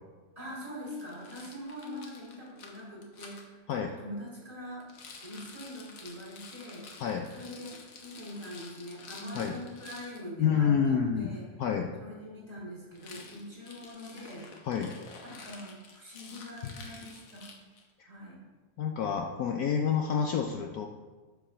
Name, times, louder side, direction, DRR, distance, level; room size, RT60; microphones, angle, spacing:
voice 1, 0.4-4.9 5.2-6.8 7.3-11.4 12.0-14.4 15.2-17.6 18.0-18.4, left 1 dB, 20° right, -5 dB, 2.5 m, -43 dB
Rattle, 0.9-3.4 4.8-10.2 12.9-17.9, left 4 dB, 90° left, 1.8 m, -50 dB
voice 2, 7.0-7.3 9.3-9.5 10.4-11.3 11.6-11.9 14.7-14.9 18.8-20.9, left 7 dB, 65° left, 3 dB, 1.0 m, -28 dB
8.9 x 4.8 x 6.2 m, 1.3 s
omnidirectional pair, 1.9 m